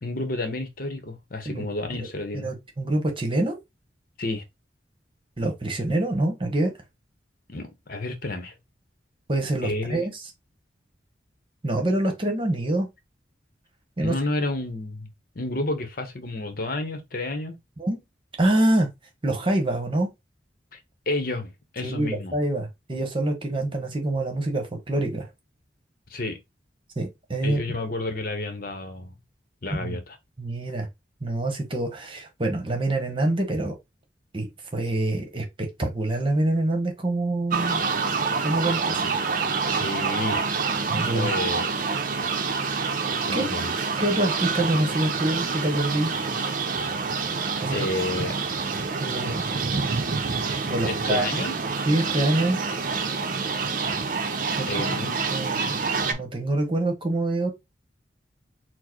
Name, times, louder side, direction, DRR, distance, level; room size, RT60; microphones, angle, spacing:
voice 1, 0.0-2.5 4.2-4.4 7.5-8.5 9.6-10.1 14.0-15.1 15.3-17.6 20.7-20.8 21.1-22.3 26.1-26.4 27.4-29.2 29.6-30.2 39.7-40.6 41.1-41.7 43.3-43.7 47.7-48.4 50.9-51.6 54.6-55.1, left 2 dB, 50° left, 0.9 m, -30 dB
voice 2, 2.3-3.6 5.4-6.7 9.3-10.1 11.6-12.9 14.0-14.1 17.8-18.0 18.4-18.9 19.2-20.1 21.8-25.3 27.0-27.6 29.8-30.0 30.4-30.9 31.2-33.8 34.3-34.5 34.7-37.8 38.4-39.1 40.9-41.3 43.3-43.4 44.0-46.1 47.6-47.9 49.0-49.5 50.6-51.5 51.9-52.6 54.6-55.8 56.1-57.5, right 1 dB, 30° right, 1.1 m, -26 dB
sound 1, 37.5-56.1, right 4 dB, 50° right, 0.6 m, -27 dB
4.5 x 2.1 x 4.4 m
head